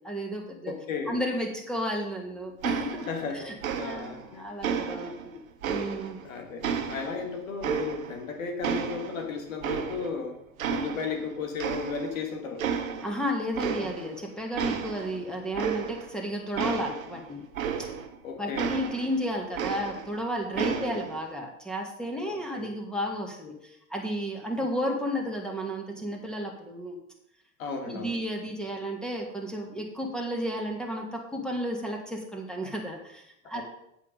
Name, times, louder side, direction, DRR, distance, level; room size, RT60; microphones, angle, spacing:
voice 1, 0.0-0.7 1.1-3.1 3.3-6.2 13.0-17.4 17.8-17.9 18.4-27.0 27.9-33.6, equal, ahead, 1 dB, 2.2 m, -33 dB
voice 2, 0.7-1.2 3.1-4.5 5.1-5.2 6.2-10.4 10.7-12.6 13.7-13.9 18.2-18.8 20.6-21.0 22.3-22.7 27.6-28.2 33.5-33.6, left 5 dB, 75° left, 3 dB, 2.2 m, -35 dB
sound 1, 2.6-3.3 3.6-4.2 4.6-6.2 6.6-8.3 8.6-10.2 10.6-11.3 11.6-12.2 12.6-13.2 13.5-14.2 14.5-18.2 18.6-20.2 20.5-21.2, right 7 dB, 80° right, 1.1 m, -32 dB
8.4 x 7.2 x 5.2 m, 0.79 s
hypercardioid pair, 85°, 40 cm